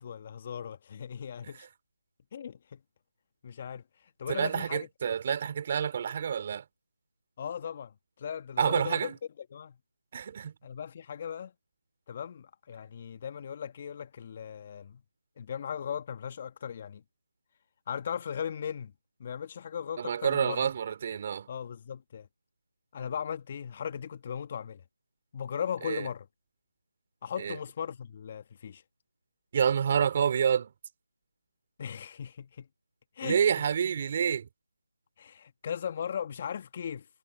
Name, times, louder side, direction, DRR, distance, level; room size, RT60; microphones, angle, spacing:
voice 1, 0.0-1.7 2.3-2.8 3.4-3.8 4.2-4.9 7.4-9.8 10.6-11.5 12.1-15.0 15.4-17.0 17.9-18.9 19.2-20.7 21.5-22.3 22.9-24.8 25.3-26.3 27.2-28.8 31.8-32.7 33.2-33.6 35.2-37.1, left 8 dB, 30° left, 1.5 m, -38 dB
voice 2, 4.3-6.6 8.6-9.1 10.1-10.5 20.0-21.5 25.8-26.1 27.4-27.6 29.5-30.7 33.2-34.5, right 7 dB, 30° right, 3.4 m, -28 dB
figure-of-eight pair, 165°, 0 cm